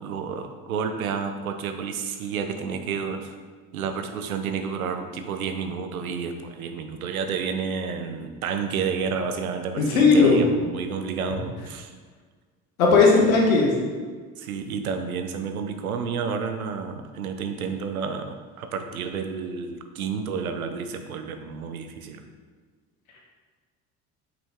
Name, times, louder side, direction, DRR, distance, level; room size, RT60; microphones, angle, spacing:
voice 1, 0.0-3.3 3.7-11.9 13.2-13.3 14.4-22.2, right 6 dB, 90° right, 7 dB, 0.6 m, -30 dB
voice 2, 9.8-10.4 12.8-13.7, left 4 dB, 80° left, -1 dB, 1.3 m, -17 dB
5.7 x 5.1 x 3.6 m, 1.5 s
hypercardioid pair, 60°, 42 cm